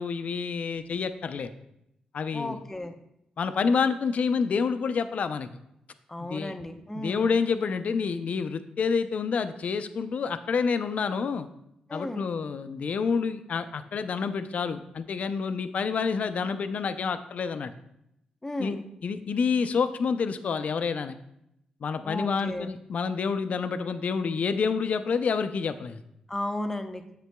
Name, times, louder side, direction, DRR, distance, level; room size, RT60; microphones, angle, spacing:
voice 1, 0.0-1.5 2.1-2.6 3.4-5.5 6.2-6.5 6.9-11.5 11.9-17.7 18.6-18.8 19.0-21.1 21.8-26.0, left 5 dB, 60° left, 11 dB, 0.5 m, -28 dB
voice 2, 2.3-2.9 6.1-7.3 11.9-12.3 18.4-18.8 22.0-22.7 26.3-27.0, left 1 dB, 15° left, 5 dB, 0.7 m, -34 dB
8.0 x 6.7 x 2.3 m, 0.80 s
cardioid pair, 60°, 3 cm